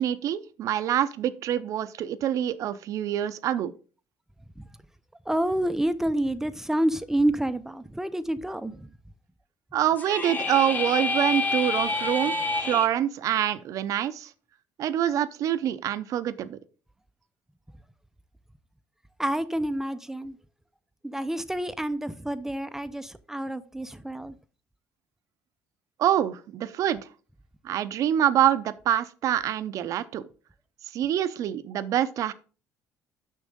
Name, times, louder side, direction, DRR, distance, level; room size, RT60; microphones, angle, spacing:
voice 1, 0.0-3.7 9.7-12.3 12.6-14.3 14.8-16.6 26.0-27.0 27.6-30.2 30.9-32.3, right 11 dB, 65° right, 0.6 m, -26 dB
voice 2, 5.3-8.9 19.2-20.4 21.0-24.3, right 1 dB, 5° right, 0.5 m, -28 dB
sound 1, 10.0-12.9, left 3 dB, 30° left, 1.0 m, -28 dB
6.4 x 6.1 x 3.7 m
cardioid pair, 95°, 6 cm